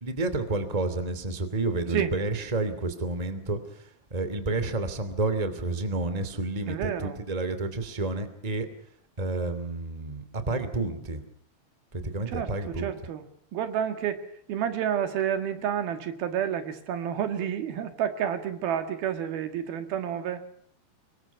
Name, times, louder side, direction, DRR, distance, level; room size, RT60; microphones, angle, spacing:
voice 1, 0.0-8.7 9.2-11.2 11.9-12.9, right 2 dB, 10° right, 11 dB, 2.1 m, -30 dB
voice 2, 6.7-7.2 12.3-13.2 13.5-14.2 14.5-20.4, right 9 dB, 75° right, 8 dB, 3.6 m, -30 dB
26.0 x 22.5 x 5.9 m, 0.65 s
omnidirectional pair, 4.4 m